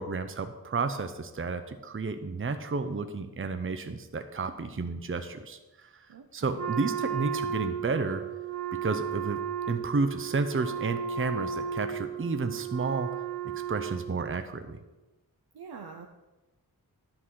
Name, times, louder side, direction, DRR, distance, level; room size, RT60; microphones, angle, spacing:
voice 1, 0.0-8.2 8.8-9.4 9.7-13.1 13.7-14.8, right 4 dB, 35° right, 8 dB, 0.7 m, -31 dB
voice 2, 6.1-6.6 15.5-16.1, right 5 dB, 80° right, 4 dB, 0.7 m, -45 dB
Wind instrument woodwind instrument, 6.6-14.5, right 7 dB, 60° right, 2.3 m, -34 dB
11.0 x 4.0 x 7.5 m, 1.1 s
wide cardioid pair, 50°, 38 cm